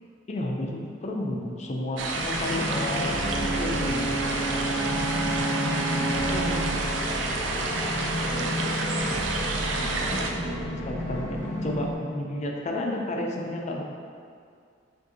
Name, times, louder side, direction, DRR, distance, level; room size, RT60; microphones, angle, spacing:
voice 1, 0.3-4.2 10.1-10.4 10.9-13.8, left 1 dB, 40° left, 0 dB, 0.5 m, -32 dB
sound 1, 2.0-10.3, right 3 dB, 80° right, 0.4 m, -30 dB
sound 2, 2.3-11.9, left 1 dB, 85° left, 0.7 m, -32 dB
Brass instrument, 2.7-6.9, right 2 dB, 5° right, 1.1 m, -31 dB
voice 2, 5.9-6.7 8.2-8.7 9.8-10.5, equal, 35° right, -8 dB, 1.1 m, -36 dB
6.1 x 2.6 x 2.7 m, 2.2 s
head